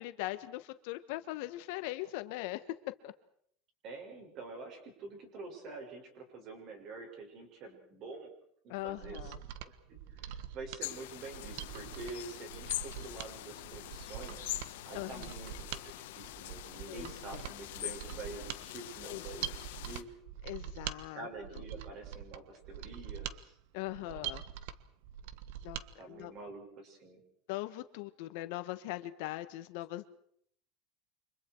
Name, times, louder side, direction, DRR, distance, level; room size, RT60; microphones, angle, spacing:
voice 1, 0.0-2.6 3.0-3.1 8.7-9.4 14.9-15.3 16.9-17.5 19.0-19.2 19.5-19.6 20.4-21.3 21.5-21.6 23.7-24.4 25.6-25.8 26.1-26.3 27.5-30.1, left 17 dB, 60° left, 11 dB, 1.4 m, -40 dB
voice 2, 3.8-8.3 8.6-9.3 9.6-10.3 10.5-14.5 14.9-20.1 21.1-23.5 24.1-24.3 26.0-27.2, right 3 dB, 35° right, 4 dB, 6.3 m, -47 dB
Mechanisms, 8.8-25.9 26.2-26.3, right 10 dB, 65° right, 1.5 m, -44 dB
sound 1, 10.8-20.0, left 16 dB, 90° left, 1.5 m, -44 dB
29.5 x 25.5 x 4.7 m, 0.66 s
cardioid pair, 175°, 0 cm